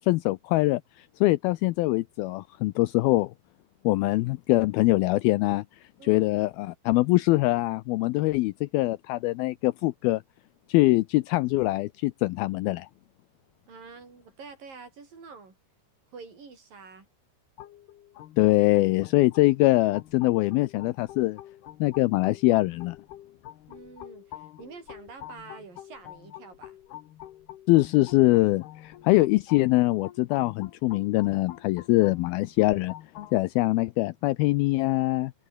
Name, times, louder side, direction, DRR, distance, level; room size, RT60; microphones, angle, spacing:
voice 1, 0.1-3.3 3.8-5.6 6.0-10.2 10.7-12.9 18.4-21.4 21.8-23.0 27.7-32.9 33.3-35.3, left 19 dB, 85° left, 2.2 m, -23 dB
voice 2, 13.7-15.6 16.1-17.1 23.7-26.8, right 4 dB, 50° right, 7.9 m, -47 dB
sound 1, 17.6-33.4, left 13 dB, 70° left, 3.3 m, -47 dB
omnidirectional pair, 5.0 m